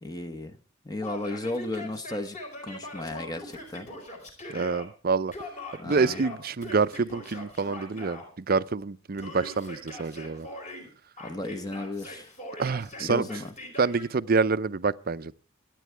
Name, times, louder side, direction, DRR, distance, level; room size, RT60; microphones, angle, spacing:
voice 1, 0.0-0.6 0.8-2.4 2.6-3.9 5.8-6.2 11.2-12.3 13.0-13.5, left 2 dB, 20° left, 0.9 m, -34 dB
Yell, 1.0-4.9 5.3-8.3 9.2-10.9 11.2-14.1, left 1 dB, 35° left, 4.5 m, -41 dB
voice 2, 4.5-5.3 5.8-10.5 12.6-13.3 13.8-15.3, right 4 dB, 45° right, 0.5 m, -27 dB
25.0 x 9.2 x 3.4 m
head